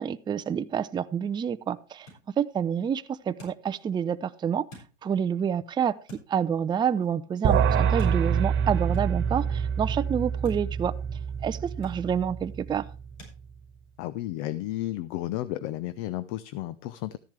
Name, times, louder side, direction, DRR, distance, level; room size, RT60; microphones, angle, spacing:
voice 1, 0.0-2.1 2.4-4.7 5.0-5.9 6.3-10.9 11.4-12.8, right 8 dB, 10° right, 0.4 m, -28 dB
sound 1, 1.1-13.4, left 2 dB, 90° left, 6.6 m, -56 dB
sound 2, 7.4-13.0, right 7 dB, 30° right, 1.6 m, -26 dB
voice 2, 14.0-17.2, left 15 dB, 50° left, 0.7 m, -33 dB
13.5 x 10.5 x 3.4 m
hypercardioid pair, 95°, 37 cm